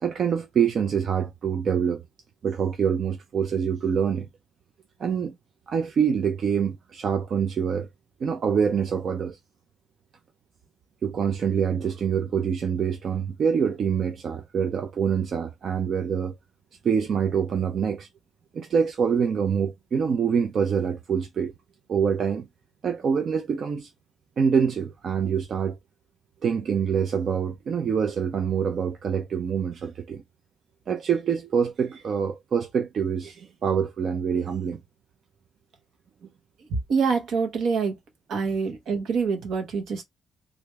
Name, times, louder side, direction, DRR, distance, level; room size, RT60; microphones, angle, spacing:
voice 1, 0.0-2.0 2.4-4.3 5.0-5.4 5.7-7.9 8.2-9.4 11.0-16.3 16.8-18.1 18.5-21.5 21.9-22.5 22.8-23.9 24.4-25.8 26.4-30.2 30.9-34.8, right 7 dB, 50° right, 0.4 m, -25 dB
voice 2, 36.7-37.9 38.3-40.0, right 5 dB, 70° right, 1.1 m, -25 dB
3.1 x 2.6 x 3.3 m
cardioid pair, 145°, 0 cm